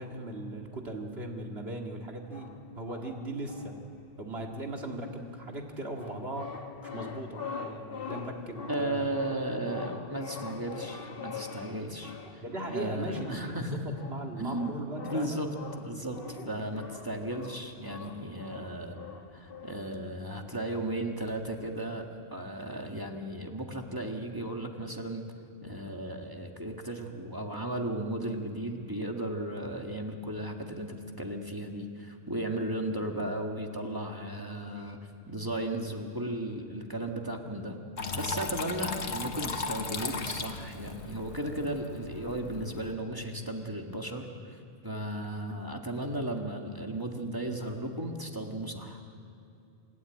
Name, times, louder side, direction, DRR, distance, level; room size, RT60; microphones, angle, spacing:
voice 1, 0.0-2.5 2.8-3.7 4.2-6.6 6.9-9.1 12.4-15.5, right 1 dB, 65° right, 2 dB, 2.4 m, -38 dB
sound 1, 2.2-22.0, left 5 dB, 55° left, 1.3 m, -45 dB
voice 2, 8.7-12.4 12.7-14.0 14.4-14.7 15.0-15.5 15.8-19.0 19.3-25.2 25.6-35.0 35.3-37.8 38.1-49.0, right 1 dB, 20° right, 2 dB, 1.8 m, -35 dB
Water tap faucet / Trickle dribble, 38.0-42.9, left 4 dB, 75° left, 1.6 m, -37 dB
27.0 x 12.5 x 9.0 m, 2.7 s
omnidirectional pair, 1.2 m